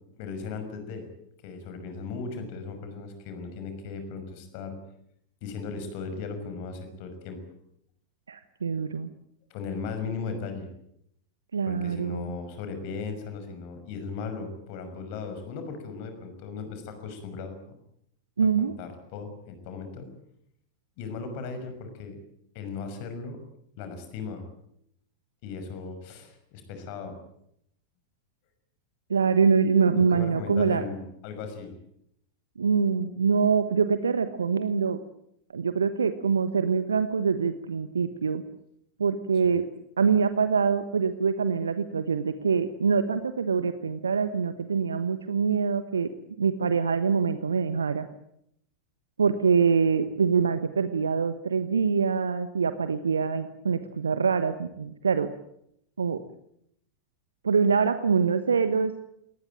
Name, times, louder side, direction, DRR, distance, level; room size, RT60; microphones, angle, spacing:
voice 1, 0.2-1.1 1.4-4.8 5.4-7.4 9.5-10.7 11.7-17.6 18.6-20.1 21.0-22.2 22.5-23.4 23.8-24.5 25.4-27.2 30.0-31.7, left 5 dB, 45° left, 8 dB, 6.0 m, -37 dB
voice 2, 8.3-9.1 11.5-12.4 18.4-18.7 29.1-30.9 32.6-35.0 35.5-38.4 39.0-39.6 40.0-46.1 46.4-48.1 49.2-55.3 56.0-56.2 57.4-58.9, right 5 dB, 70° right, 11 dB, 1.2 m, -24 dB
22.5 x 19.5 x 9.1 m, 0.74 s
figure-of-eight pair, 90°, 0 cm